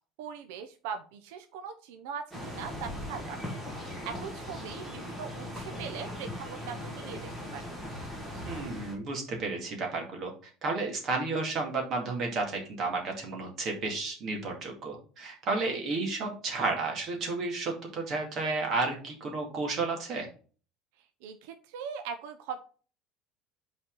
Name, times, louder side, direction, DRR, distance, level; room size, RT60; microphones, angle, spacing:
voice 1, 0.2-3.4 3.8-7.2 7.5-7.6 21.2-22.6, right 7 dB, 85° right, 7 dB, 0.7 m, -40 dB
sound 1, 2.3-9.0, left 1 dB, 10° right, 2.1 m, -39 dB
voice 2, 8.4-10.3 10.6-20.3, right 3 dB, 35° right, 1 dB, 2.2 m, -32 dB
5.6 x 4.2 x 5.4 m, 0.39 s
cardioid pair, 175°, 0 cm